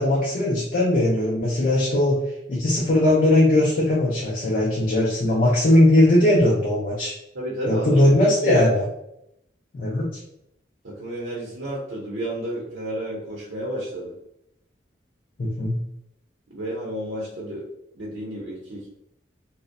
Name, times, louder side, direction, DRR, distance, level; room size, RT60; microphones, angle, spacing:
voice 1, 0.0-2.2 2.5-7.1 7.7-8.8 9.7-10.0 15.4-15.8, left 1 dB, 45° left, -5 dB, 0.4 m, -19 dB
voice 2, 7.3-8.7 10.8-14.1 16.5-17.6 18.0-18.9, right 1 dB, 75° right, -5 dB, 0.6 m, -31 dB
2.5 x 2.0 x 2.5 m, 0.80 s
head